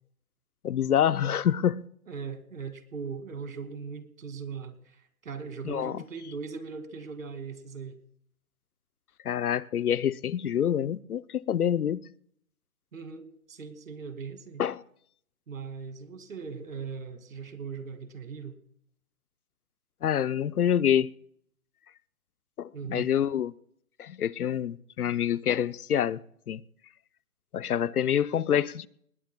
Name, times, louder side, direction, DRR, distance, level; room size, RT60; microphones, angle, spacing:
voice 1, 0.6-1.8 5.6-6.0 9.2-12.0 14.6-14.8 20.0-21.1 22.6-23.5 24.0-26.2 26.5-26.6 27.5-28.9, left 9 dB, 80° left, 0.7 m, -26 dB
voice 2, 2.1-8.0 12.9-14.6 15.5-18.6 22.7-23.1, right 5 dB, 65° right, 2.3 m, -39 dB
25.5 x 19.5 x 2.2 m
hypercardioid pair, 165°, 44 cm